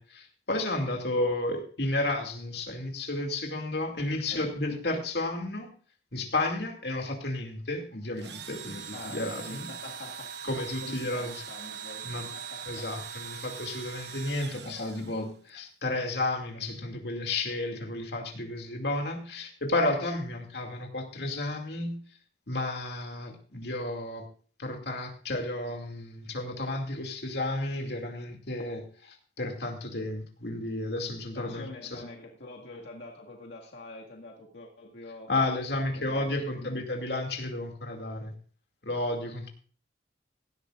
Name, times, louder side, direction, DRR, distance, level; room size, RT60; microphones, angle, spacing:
voice 1, 0.0-5.7 6.1-9.7 10.5-11.3 12.0-12.3 12.7-22.0 22.5-24.3 24.6-32.0 35.3-38.3 38.8-39.5, left 2 dB, 70° left, 3 dB, 2.5 m, -32 dB
Engine / Drill, 8.2-15.5, right 7 dB, 75° right, 1.1 m, -41 dB
voice 2, 8.9-12.9 31.3-35.3 35.9-36.8, left 2 dB, 85° left, -1 dB, 2.0 m, -45 dB
17.5 x 13.0 x 2.5 m, 0.42 s
head